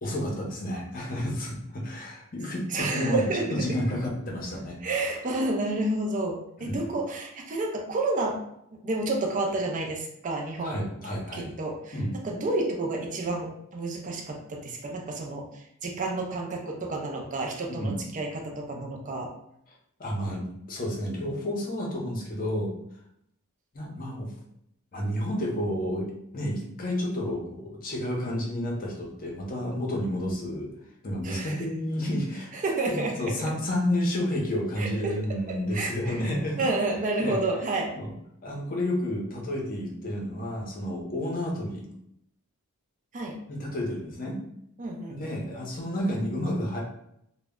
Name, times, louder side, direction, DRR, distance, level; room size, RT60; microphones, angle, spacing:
voice 1, 0.0-4.8 6.6-6.8 10.6-11.5 11.9-12.1 17.7-18.0 20.0-22.7 23.7-24.3 24.9-30.7 31.0-32.5 32.9-36.6 37.2-37.4 38.0-38.1 38.4-41.8 43.5-44.4 45.1-46.8, left 1 dB, 40° left, -1 dB, 0.6 m, -30 dB
voice 2, 2.7-3.6 4.8-8.4 8.7-10.8 11.3-12.0 12.2-19.3 31.2-31.7 32.6-33.4 34.8-35.2 35.5-36.2 36.6-37.9 43.1-43.4 44.8-45.3, right 2 dB, 35° right, 1 dB, 0.4 m, -30 dB
2.1 x 2.0 x 3.5 m, 0.75 s
head